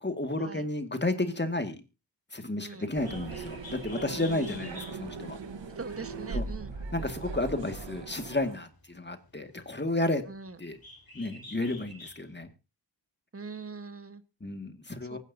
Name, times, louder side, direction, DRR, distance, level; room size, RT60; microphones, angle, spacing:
voice 1, 0.0-1.8 2.3-5.4 6.3-6.4 6.9-10.2 10.6-10.8 11.1-12.5 14.4-15.2, left 2 dB, 25° left, 2.1 m, -32 dB
Bird, 2.9-12.4, left 3 dB, 55° left, 3.7 m, -51 dB
sound 1, 2.9-8.6, right 4 dB, 90° right, 1.5 m, -39 dB
voice 2, 4.3-4.8 5.7-6.7 10.3-10.6 13.3-14.2 15.1-15.2, right 4 dB, 30° right, 1.4 m, -42 dB
24.0 x 10.0 x 2.8 m
cardioid pair, 50°, 43 cm